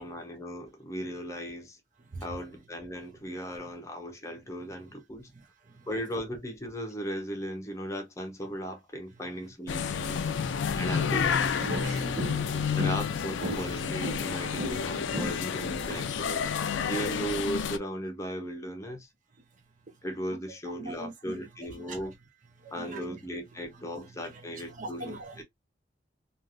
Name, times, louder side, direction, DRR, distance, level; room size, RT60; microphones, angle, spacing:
voice 1, 0.0-1.8 2.2-5.3 5.9-10.3 10.8-11.9 12.5-16.5 16.9-19.1 20.0-22.1 22.7-25.4, equal, 15° left, 0.8 m, -37 dB
sound 1, 9.7-17.8, left 7 dB, 85° left, 0.4 m, -30 dB
voice 2, 10.2-10.8 12.1-12.8 20.8-21.5 21.8-22.0 22.6-23.2 24.6-25.4, right 2 dB, 40° right, 0.5 m, -43 dB
sound 2, 11.0-16.2, equal, 75° right, 1.0 m, -37 dB
3.2 x 2.5 x 2.4 m
head